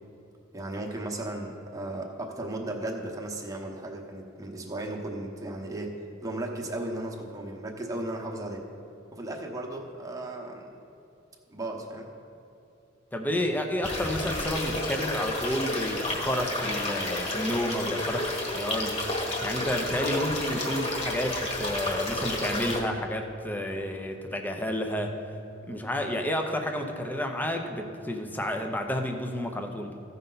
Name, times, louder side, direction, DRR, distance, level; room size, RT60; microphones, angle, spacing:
voice 1, 0.5-8.7 9.1-10.7 11.5-12.1, right 1 dB, 15° right, -1 dB, 1.0 m, -35 dB
voice 2, 13.1-25.2 25.7-30.0, left 1 dB, 10° left, 4 dB, 0.7 m, -31 dB
sound 1, 13.8-22.8, left 1 dB, 35° left, 1.5 m, -31 dB
15.0 x 5.5 x 4.0 m, 2.8 s
head